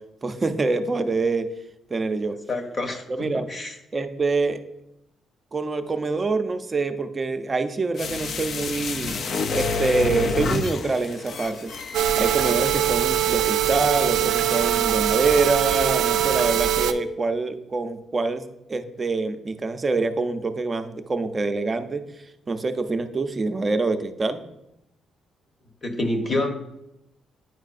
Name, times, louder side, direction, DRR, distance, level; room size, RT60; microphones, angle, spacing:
voice 1, 0.2-1.5 1.9-2.4 3.1-3.5 3.9-4.6 5.5-9.2 9.5-11.7 12.2-18.4 18.7-22.0 22.5-24.4, right 3 dB, 30° right, 8 dB, 0.5 m, -25 dB
voice 2, 2.5-3.7 25.8-26.5, left 2 dB, 40° left, 4 dB, 1.0 m, -27 dB
sound 1, 8.0-13.0 13.3-13.4, left 4 dB, 60° left, 0.5 m, -29 dB
sound 2, 11.9-16.9, right 11 dB, 80° right, 0.4 m, -22 dB
9.5 x 4.5 x 2.5 m, 0.88 s
cardioid pair, 90°, 0 cm